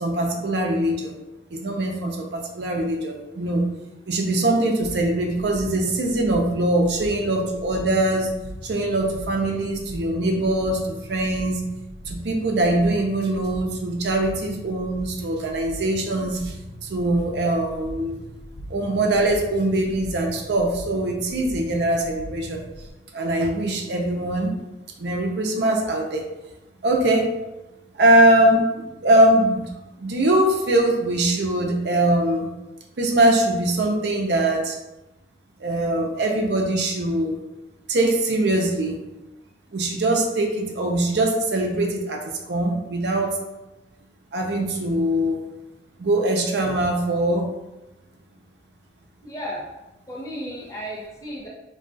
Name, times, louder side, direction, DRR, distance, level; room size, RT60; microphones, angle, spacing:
voice 1, 0.0-1.1 1.5-3.7 4.1-8.3 8.6-11.7 12.1-16.4 16.9-18.2 18.7-22.6 23.1-24.5 25.0-26.2 26.8-27.3 28.0-29.7 30.0-32.5 33.0-34.7 35.6-37.4 37.9-38.9 39.7-42.2 42.5-43.3 44.3-45.4 46.0-47.4, right 1 dB, 65° right, 2 dB, 0.5 m, -22 dB
sound 1, 4.8-22.9, equal, 90° left, 0.4 m, -40 dB
voice 2, 49.2-49.6 50.1-51.5, equal, 20° left, -6 dB, 0.6 m, -34 dB
2.3 x 2.3 x 3.8 m, 1.0 s
head